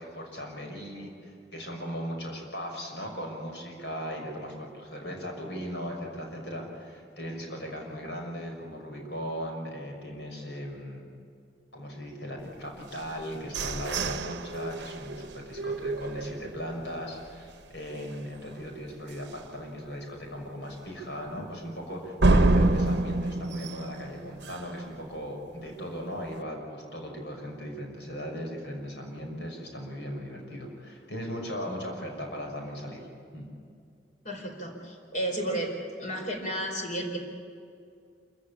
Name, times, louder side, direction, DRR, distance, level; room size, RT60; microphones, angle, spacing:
voice 1, 0.0-11.1 11.7-33.1 33.3-33.5, equal, 75° left, 1 dB, 6.1 m, -38 dB
sound 1, 12.9-16.8 17.3-17.4 17.7-18.1 18.5-18.6 19.1-19.2 22.2-24.9, right 2 dB, 75° right, 0.9 m, -27 dB
voice 2, 34.2-35.7 36.0-37.2, right 1 dB, 45° left, 2 dB, 4.8 m, -32 dB
27.5 x 15.5 x 8.7 m, 2.4 s
head